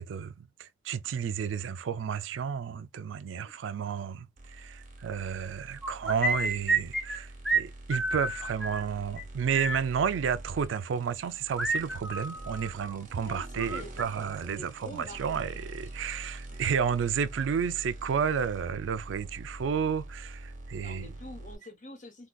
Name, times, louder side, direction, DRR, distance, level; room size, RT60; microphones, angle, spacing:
voice 1, 0.0-21.1, right 7 dB, 65° right, 0.3 m, -32 dB
sound 1, 4.4-21.6, right 1 dB, 40° right, 0.9 m, -45 dB
sound 2, 5.8-7.2 7.4-7.6 7.9-8.8 9.2-9.3 9.5-9.8 11.6-13.0 13.3-14.0, right 2 dB, ahead, 0.5 m, -30 dB
voice 2, 13.2-15.7 16.5-16.6 17.4-17.5 20.8-22.3, left 2 dB, 40° left, 0.9 m, -46 dB
3.7 x 2.3 x 2.2 m
head